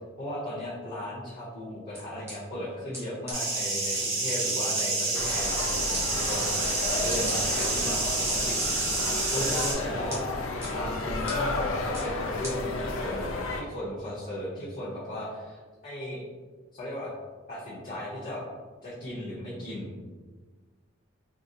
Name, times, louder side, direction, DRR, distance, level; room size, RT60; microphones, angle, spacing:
voice 1, 0.2-10.4 10.7-16.2 16.7-17.1 17.5-18.4 18.8-20.0, left 1 dB, 40° left, -9 dB, 0.7 m, -36 dB
sound 1, 1.9-2.3 2.9-3.0 3.3-3.4 3.9-4.4 4.8-4.9 5.3-5.4 5.9-6.0 6.6-6.7 7.1-7.7 8.3-8.7 9.3-9.7 10.1-10.2 10.6-10.7 11.3-11.4 11.9-12.1 12.4-12.5, right 1 dB, 10° right, 0.6 m, -38 dB
sound 2, 3.3-9.7, right 2 dB, 85° right, 1.5 m, -28 dB
sound 3, 5.1-13.6, left 2 dB, 80° left, 0.4 m, -32 dB
3.8 x 2.0 x 2.6 m, 1.4 s
head